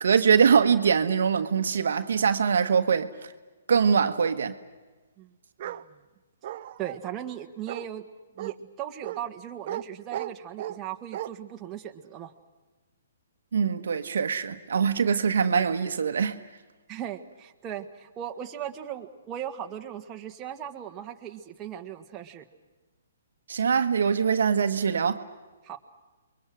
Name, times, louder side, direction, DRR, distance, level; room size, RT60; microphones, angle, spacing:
voice 1, 0.0-3.3 3.7-4.6 13.5-16.5 23.5-25.2, right 6 dB, 70° right, 1.4 m, -23 dB
voice 2, 5.6-6.0 6.8-8.0 8.4-12.3 16.9-22.4 25.6-25.8, right 10 dB, 20° right, 1.8 m, -38 dB
Bark, 5.6-5.8 6.4-7.0 7.7-7.9 8.4-8.5 9.0-9.2 9.7-9.8 10.1-10.8 11.1-11.3, right 12 dB, 45° right, 0.8 m, -35 dB
29.0 x 23.0 x 6.4 m
hypercardioid pair, 140°, 0 cm